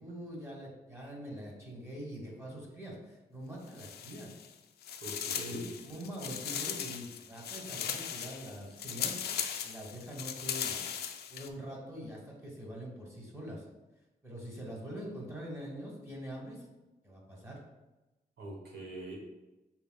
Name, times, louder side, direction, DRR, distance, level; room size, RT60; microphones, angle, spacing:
voice 1, 0.0-4.3 5.3-10.9 11.3-13.6 14.2-16.7 17.0-17.6, equal, 15° right, -2 dB, 1.4 m, -44 dB
sound 1, 3.7-4.5 4.8-11.5, left 8 dB, 75° left, 0.4 m, -38 dB
voice 2, 5.0-5.7 18.4-19.2, right 2 dB, 90° right, -2 dB, 1.2 m, -43 dB
5.9 x 3.4 x 2.3 m, 1.0 s
cardioid pair, 85°, 17 cm